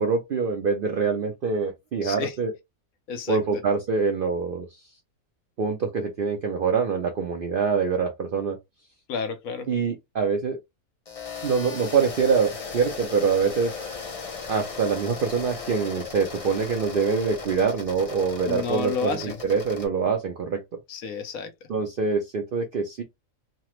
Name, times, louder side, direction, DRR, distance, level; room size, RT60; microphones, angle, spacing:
voice 1, 0.0-2.5 3.3-4.7 5.6-8.6 9.7-10.6 11.4-13.7 14.5-20.6 21.7-23.0, right 5 dB, 55° right, 0.6 m, -25 dB
voice 2, 2.0-2.4 3.1-3.6 9.1-9.7 18.5-19.4 20.9-21.5, left 5 dB, 90° left, 1.2 m, -31 dB
sound 1, 11.1-19.9, left 5 dB, 40° left, 0.5 m, -37 dB
3.2 x 2.0 x 3.0 m
omnidirectional pair, 1.4 m